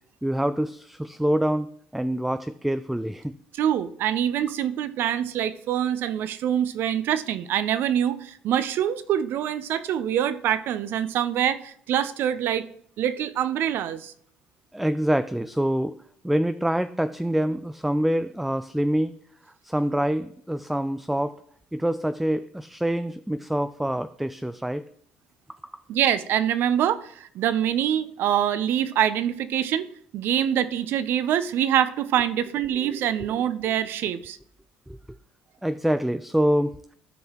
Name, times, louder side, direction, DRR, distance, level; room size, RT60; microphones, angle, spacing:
voice 1, 0.2-3.3 14.7-16.0 16.2-19.2 19.6-21.3 21.7-24.8 25.5-25.8 32.8-33.0 34.9-35.0 35.6-37.0, right 1 dB, 5° right, 11 dB, 0.4 m, -26 dB
voice 2, 3.6-12.7 13.0-14.1 25.9-29.9 30.1-34.4, right 10 dB, 65° right, 14 dB, 0.6 m, -25 dB
13.0 x 5.5 x 3.0 m, 0.62 s
supercardioid pair, 75°, 4 cm